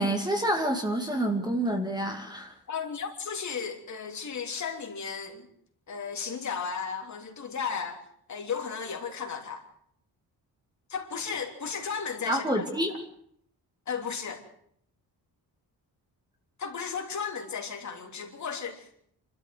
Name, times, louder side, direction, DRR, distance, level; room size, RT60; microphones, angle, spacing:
voice 1, 0.0-2.5 12.3-12.9, right 1 dB, 10° right, 4 dB, 2.5 m, -28 dB
voice 2, 2.7-5.5 5.9-8.0 8.3-9.6 10.9-12.5 13.9-14.4 16.6-19.0, left 6 dB, 45° left, 3 dB, 3.4 m, -34 dB
28.5 x 13.0 x 7.9 m, 0.68 s
wide cardioid pair, 165°, 39 cm